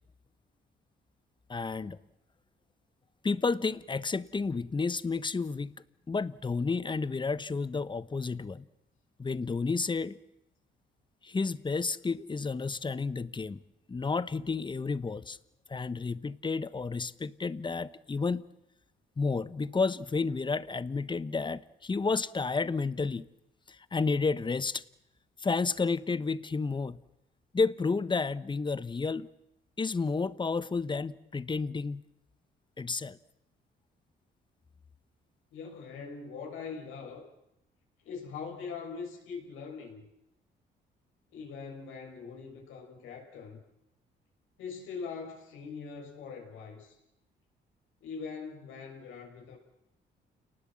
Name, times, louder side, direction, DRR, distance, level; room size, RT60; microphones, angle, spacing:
voice 1, 1.5-2.0 3.2-5.7 6.1-8.6 9.2-10.2 11.2-13.6 13.9-15.4 15.7-18.4 19.2-23.3 23.7-24.8 25.4-27.0 27.5-29.3 29.8-32.0 32.8-33.2, left 4 dB, 25° left, 1.0 m, -31 dB
voice 2, 35.5-37.2 38.0-40.0 41.3-43.6 44.6-47.0 48.0-49.6, left 5 dB, 90° left, 6.2 m, -42 dB
29.5 x 19.5 x 7.5 m
cardioid pair, 90°, 20 cm